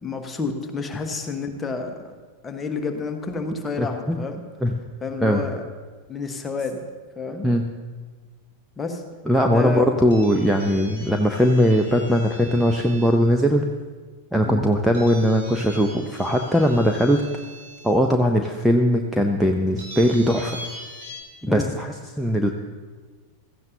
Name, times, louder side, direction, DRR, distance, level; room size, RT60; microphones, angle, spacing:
voice 1, 0.0-2.1 2.4-4.4 5.0-5.6 6.1-6.8 7.1-7.5 8.8-9.0 9.4-9.8 14.4-14.6 21.5-21.7, left 4 dB, 15° left, 4 dB, 1.3 m, -29 dB
voice 2, 3.8-4.2 4.6-4.7 5.2-5.4 7.4-7.6 9.3-13.6 14.3-17.3 17.8-20.6 21.4-22.5, equal, 5° right, 2 dB, 0.7 m, -20 dB
sound 1, 10.1-13.2 14.9-17.9 18.6-18.7 19.8-21.2, equal, 60° right, 4.4 m, -41 dB
16.5 x 14.0 x 2.8 m, 1.4 s
figure-of-eight pair, 90°, 0 cm